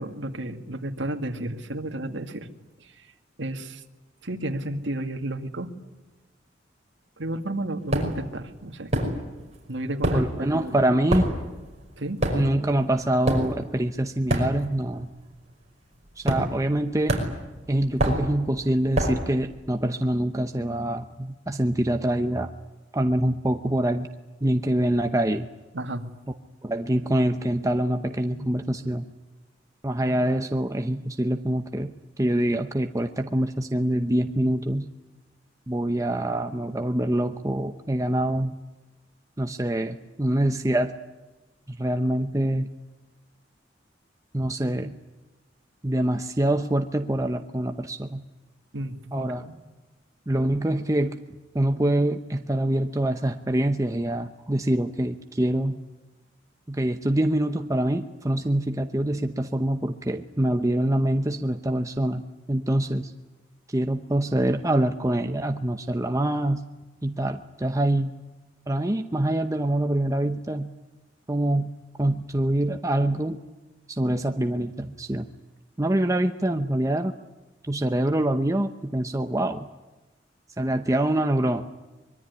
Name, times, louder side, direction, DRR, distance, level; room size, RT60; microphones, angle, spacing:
voice 1, 0.0-2.5 2.8-3.1 3.4-3.8 4.2-5.7 7.2-8.9 9.7-10.9 12.0-12.2 25.7-26.1 48.7-49.5, right 1 dB, 70° right, 5 dB, 2.3 m, -32 dB
sound 1, 7.9-8.3 8.9-9.5 9.8-14.9 15.2-15.5 16.2-16.8 17.1-19.3, right 1 dB, 35° right, 5.5 m, -27 dB
voice 2, 10.1-11.3 12.3-15.1 16.2-17.2 17.7-22.5 22.9-24.1 24.4-25.5 26.6-29.1 29.8-31.9 32.2-34.9 35.7-38.6 39.4-40.9 41.7-42.7 44.3-45.0 45.8-48.2 49.1-49.4 50.3-51.2 51.5-55.8 56.7-62.2 62.5-63.1 63.7-66.6 67.0-68.1 68.7-70.7 71.3-71.7 72.0-73.4 73.9-75.3 75.8-77.1 77.7-79.7 80.6-81.7, right 1 dB, 15° right, 6 dB, 0.8 m, -25 dB
24.5 x 22.5 x 9.6 m, 1.1 s
head